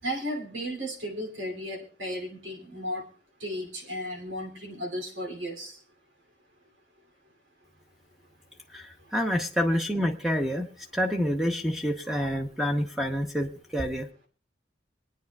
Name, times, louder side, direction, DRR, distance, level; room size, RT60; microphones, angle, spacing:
voice 1, 0.0-3.1 3.4-5.7, equal, 85° right, 2 dB, 2.9 m, -34 dB
voice 2, 9.1-10.7 10.9-14.1, equal, ahead, 3 dB, 0.8 m, -27 dB
25.5 x 9.5 x 2.3 m, 0.38 s
head